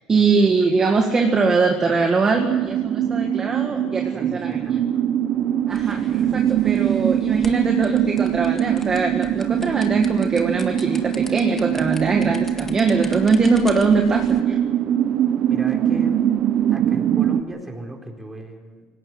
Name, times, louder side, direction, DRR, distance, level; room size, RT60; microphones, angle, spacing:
voice 1, 0.1-4.8 5.7-14.6, right 4 dB, 25° right, 3 dB, 1.8 m, -21 dB
sound 1, 2.4-17.4, right 10 dB, 50° right, 0.9 m, -22 dB
voice 2, 4.1-5.0 9.9-10.1 15.5-16.2 16.7-18.9, right 1 dB, 10° right, 2 dB, 4.1 m, -37 dB
sound 2, 5.7-14.4, left 3 dB, 15° left, 1.8 m, -42 dB
19.5 x 17.5 x 9.6 m, 1.4 s
cardioid pair, 120°, 2 cm